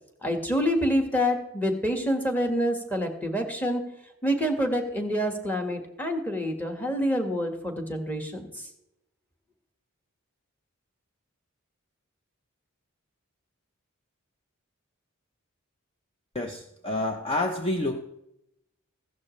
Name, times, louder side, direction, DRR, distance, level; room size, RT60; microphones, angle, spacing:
voice 1, 0.2-3.8 4.2-8.7, equal, 10° left, 4 dB, 1.5 m, -27 dB
voice 2, 16.3-18.0, left 2 dB, 25° left, 4 dB, 0.7 m, -28 dB
15.5 x 12.0 x 3.2 m, 0.85 s
head